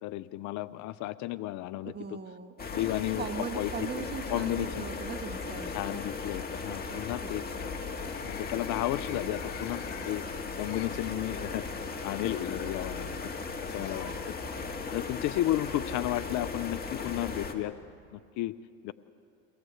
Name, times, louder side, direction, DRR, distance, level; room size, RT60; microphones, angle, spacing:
voice 1, 0.0-1.9 2.7-3.9 4.3-4.8 5.7-7.8 8.2-10.3 10.6-11.6 12.0-13.2 13.6-14.4 14.9-17.7 18.1-18.5 18.8-18.9, left 15 dB, 50° left, 15 dB, 0.6 m, -33 dB
voice 2, 1.8-2.7 3.2-6.0 6.9-7.3 13.7-14.2, right 6 dB, 25° right, 7 dB, 1.6 m, -40 dB
sound 1, 2.6-17.5, left 4 dB, 25° left, 2.0 m, -37 dB
sound 2, 7.9-11.0 11.8-14.2 14.5-14.6 15.7-15.8, left 7 dB, 70° left, 4.3 m, -49 dB
23.5 x 18.0 x 7.9 m, 2.4 s
supercardioid pair, 105°, 37 cm